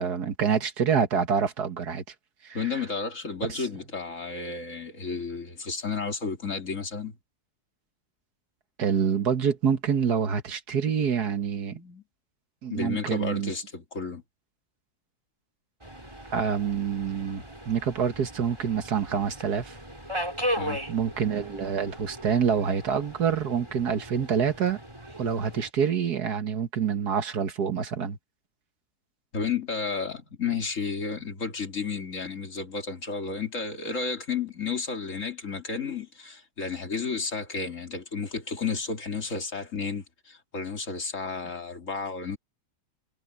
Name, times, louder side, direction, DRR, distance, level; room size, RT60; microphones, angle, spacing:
voice 1, 0.0-2.0 2.4-2.6 8.8-11.7 12.6-13.5 16.3-19.8 20.9-24.8 25.2-28.2, right 7 dB, 80° right, 2.0 m, -26 dB
voice 2, 2.5-7.2 11.7-12.0 12.7-14.2 20.6-20.8 29.3-42.4, left 5 dB, 50° left, 2.8 m, -32 dB
Subway metro underground, 15.8-25.7, equal, 15° right, 6.5 m, -37 dB
omnidirectional pair, 1.7 m